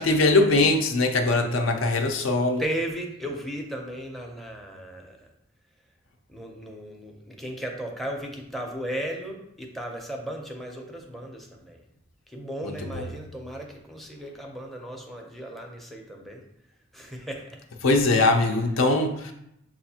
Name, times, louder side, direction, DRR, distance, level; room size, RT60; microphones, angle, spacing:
voice 1, 0.0-2.6 12.6-13.0 17.8-19.3, left 2 dB, 75° left, 4 dB, 0.5 m, -22 dB
voice 2, 2.6-5.2 6.3-11.8 12.3-16.4 16.9-17.4, right 1 dB, ahead, 1 dB, 0.5 m, -35 dB
6.1 x 2.4 x 2.7 m, 0.79 s
head